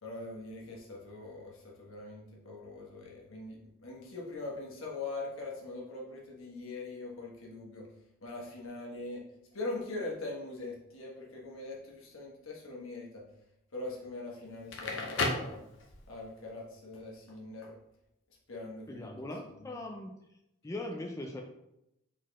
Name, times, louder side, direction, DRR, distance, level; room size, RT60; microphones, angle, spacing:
voice 1, 0.0-7.9 8.2-9.2 9.5-13.3 13.7-15.7 16.1-17.8 18.5-19.1 19.6-19.8, left 2 dB, 80° left, -3 dB, 1.3 m, -42 dB
Crackle, 14.5-16.2, left 2 dB, 60° left, 0.7 m, -34 dB
voice 2, 18.9-20.1 20.6-21.4, left 1 dB, 15° left, 2 dB, 0.3 m, -40 dB
4.1 x 4.1 x 3.1 m, 0.85 s
head